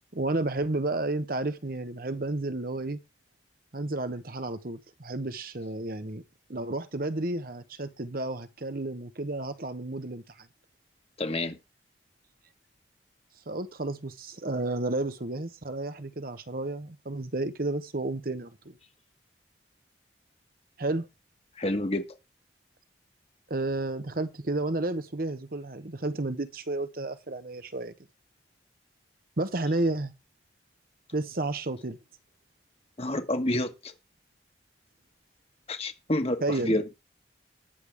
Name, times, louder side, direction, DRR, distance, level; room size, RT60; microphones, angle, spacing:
voice 1, 0.1-3.0 3.7-6.2 6.5-10.5 13.5-18.8 20.8-21.1 23.5-27.9 29.4-30.1 31.1-32.0 36.4-36.8, right 2 dB, 50° right, 1.0 m, -31 dB
voice 2, 11.2-11.6 21.6-22.0 33.0-33.9 35.7-36.9, left 1 dB, 35° left, 1.5 m, -28 dB
19.5 x 6.8 x 3.5 m
head